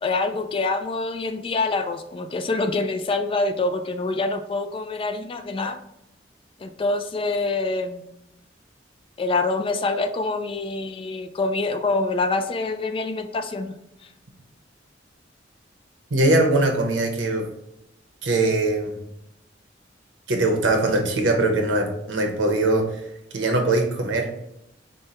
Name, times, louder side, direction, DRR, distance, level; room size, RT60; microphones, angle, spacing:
voice 1, 0.0-5.8 6.6-8.1 9.2-13.7, left 3 dB, 30° left, 8 dB, 0.3 m, -25 dB
voice 2, 16.1-17.5 18.2-19.0 20.3-22.9 23.3-24.3, right 2 dB, 85° right, 3 dB, 0.9 m, -21 dB
5.2 x 2.2 x 4.2 m, 0.83 s
head